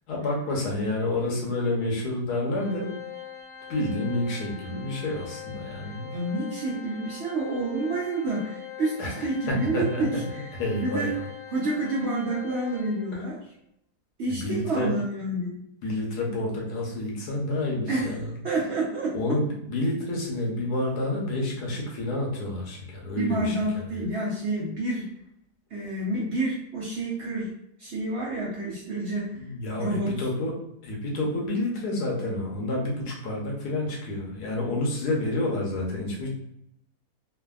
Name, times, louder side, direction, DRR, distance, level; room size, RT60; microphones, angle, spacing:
voice 1, 0.1-2.9 3.7-6.1 9.0-10.3 10.5-11.2 13.1-13.3 14.3-14.9 15.8-18.3 19.1-23.6 29.3-36.3, left 2 dB, 80° left, -1 dB, 1.3 m, -29 dB
Organ, 2.5-13.3, left 8 dB, 65° left, 1.0 m, -42 dB
voice 2, 6.1-10.4 10.7-11.1 11.5-13.4 14.2-15.6 17.9-18.1 18.4-19.1 23.2-25.1 25.7-27.5 27.8-29.4 29.8-30.1, right 2 dB, 65° right, -5 dB, 0.7 m, -29 dB
3.3 x 2.1 x 2.2 m, 0.76 s
omnidirectional pair, 1.7 m